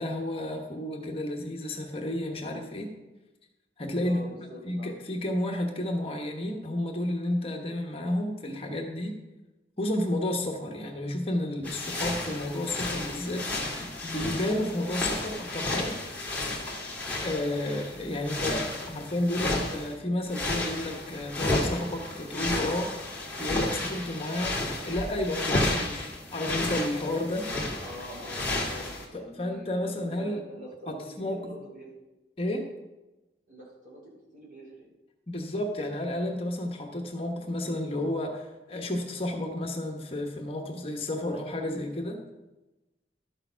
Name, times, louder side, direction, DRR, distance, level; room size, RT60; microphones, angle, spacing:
voice 1, 0.0-2.9 3.8-4.3 4.7-9.2 9.8-16.0 17.2-23.0 23.4-27.5 29.1-30.4 30.9-31.5 32.4-32.7 35.3-42.2, left 1 dB, 35° left, 3 dB, 1.2 m, -31 dB
voice 2, 4.0-4.9 27.8-31.0 31.3-31.9 33.5-34.9, equal, 45° right, -5 dB, 4.6 m, -45 dB
sound 1, 11.6-19.9 20.2-29.1, left 2 dB, 10° left, 1.9 m, -32 dB
12.0 x 6.9 x 5.7 m, 1.1 s
head